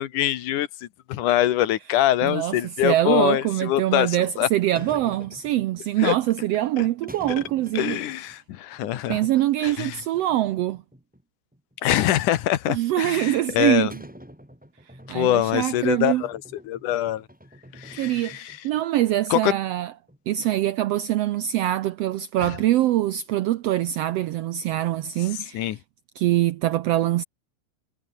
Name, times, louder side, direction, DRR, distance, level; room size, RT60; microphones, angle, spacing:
voice 1, 0.0-4.5 6.0-6.2 6.8-6.9 7.7-9.2 9.6-10.0 11.8-13.9 15.1-17.3 17.7-18.6 19.3-19.5 22.4-22.6 25.5-25.8, left 13 dB, 85° left, 2.7 m, -24 dB
voice 2, 2.2-8.0 9.1-10.8 12.7-13.9 15.1-16.2 18.0-19.9 20.3-25.8 26.2-27.2, right 14 dB, 80° right, 1.4 m, -24 dB
sound 1, 4.8-6.0 7.1-8.4 8.7-8.8 10.0-11.2 11.5-12.4 13.9-18.8 19.1-19.2 19.6-19.7 20.1-20.7, equal, ahead, 5.2 m, -46 dB
omnidirectional pair, 3.6 m